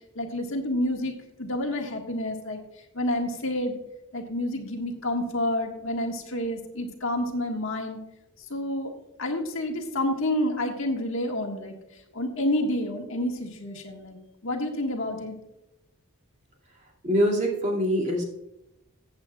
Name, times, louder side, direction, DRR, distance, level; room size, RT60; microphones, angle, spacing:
voice 1, 0.1-1.1 1.4-2.6 2.9-3.8 4.1-8.0 8.5-8.9 9.2-11.7 12.1-14.2 14.4-15.4, left 1 dB, 60° left, 2 dB, 1.6 m, -29 dB
voice 2, 16.8-18.2, equal, 30° right, -1 dB, 2.5 m, -24 dB
15.5 x 8.1 x 2.4 m, 0.89 s
head